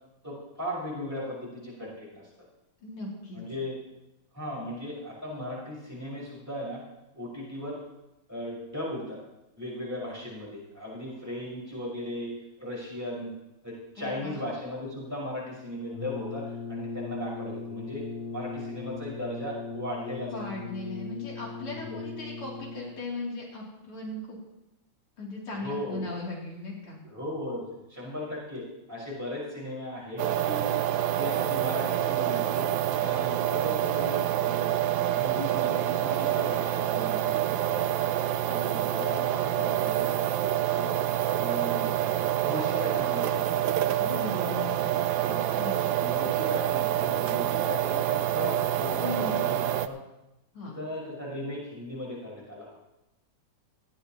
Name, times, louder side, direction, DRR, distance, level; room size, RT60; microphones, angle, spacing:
voice 1, 0.2-2.3 3.3-3.8 4.3-6.8 7.1-7.8 8.3-9.2 9.6-12.3 12.6-13.3 13.6-18.0 18.3-20.4 21.7-22.0 25.6-26.1 27.0-28.6 28.9-30.7 31.0-32.7 33.0-34.8 35.1-37.9 38.4-40.9 41.4-42.2 42.4-44.0 45.2-45.4 46.0-50.0 50.6-52.7, left 1 dB, 5° right, -6 dB, 5.8 m, -37 dB
voice 2, 2.8-3.4 14.0-14.4 20.3-24.4 25.2-27.0 44.0-44.9 45.6-46.3 49.0-49.3 50.5-50.8, left 2 dB, 85° left, -4 dB, 4.4 m, -37 dB
Brass instrument, 15.9-23.0, left 4 dB, 55° left, 0.7 m, -38 dB
sound 1, 30.2-49.9, right 12 dB, 70° right, 1.3 m, -27 dB
18.5 x 14.0 x 3.1 m, 0.92 s
omnidirectional pair, 2.3 m